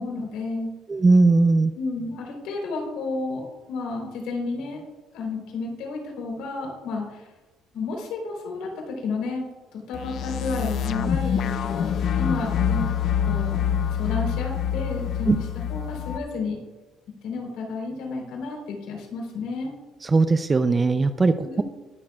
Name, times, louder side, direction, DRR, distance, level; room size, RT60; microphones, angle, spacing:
voice 1, 0.0-0.7 1.7-4.8 5.1-7.3 7.7-9.5 9.7-12.9 13.3-13.6 13.9-16.6 17.2-19.7 21.4-21.6, left 3 dB, 85° left, 0 dB, 3.7 m, -31 dB
voice 2, 0.9-1.7 15.3-15.4 20.0-21.6, right 3 dB, 25° right, 9 dB, 0.5 m, -19 dB
sound 1, 9.9-16.2, left 8 dB, 60° left, 0.7 m, -26 dB
21.5 x 7.2 x 2.4 m, 1.1 s
cardioid pair, 120°, 0 cm